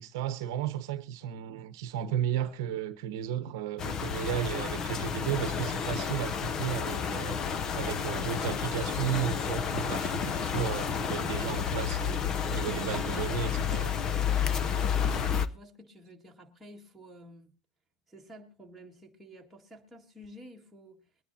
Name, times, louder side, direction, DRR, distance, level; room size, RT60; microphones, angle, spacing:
voice 1, 0.0-7.4 7.7-14.0, right 9 dB, 55° right, 1.0 m, -34 dB
sound 1, 3.8-15.5, left 7 dB, 25° left, 0.6 m, -31 dB
voice 2, 14.8-17.5 18.1-21.0, equal, 5° right, 2.0 m, -52 dB
23.0 x 10.0 x 2.8 m
supercardioid pair, 150°, 2 cm